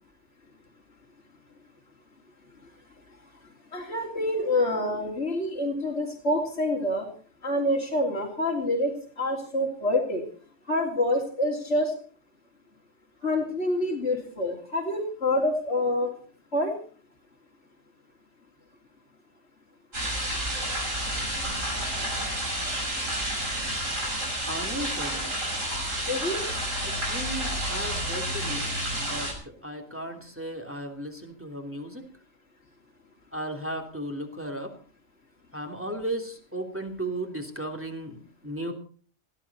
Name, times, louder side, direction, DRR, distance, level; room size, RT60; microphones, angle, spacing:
voice 1, 3.7-7.1 7.4-10.2 10.7-11.9 13.2-16.1 16.5-16.7 26.1-26.4, left 1 dB, 60° left, -3 dB, 3.7 m, -27 dB
sound 1, 19.9-29.3, right 1 dB, 85° right, 6.4 m, -30 dB
voice 2, 24.5-25.3 26.8-32.0 33.3-34.7 35.5-38.7, right 1 dB, 10° right, 3 dB, 3.1 m, -35 dB
20.0 x 16.0 x 4.2 m, 0.43 s
omnidirectional pair, 1.3 m